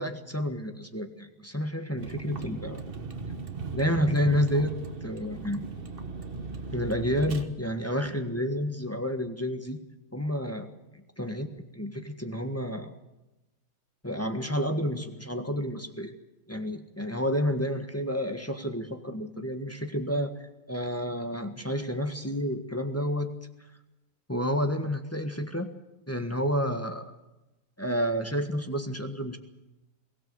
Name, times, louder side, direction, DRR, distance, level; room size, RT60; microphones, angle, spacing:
voice 1, 0.0-2.8 3.7-5.7 6.7-9.8 10.1-10.7 10.9-11.5 11.7-12.9 14.0-16.1 16.5-20.4 20.7-23.3 24.3-25.7 26.1-27.1 27.8-29.4, equal, 10° left, 5 dB, 1.3 m, -30 dB
Vehicle, 2.0-7.4, right 4 dB, 30° right, 1.4 m, -37 dB
22.5 x 17.0 x 7.9 m, 0.99 s
omnidirectional pair, 2.1 m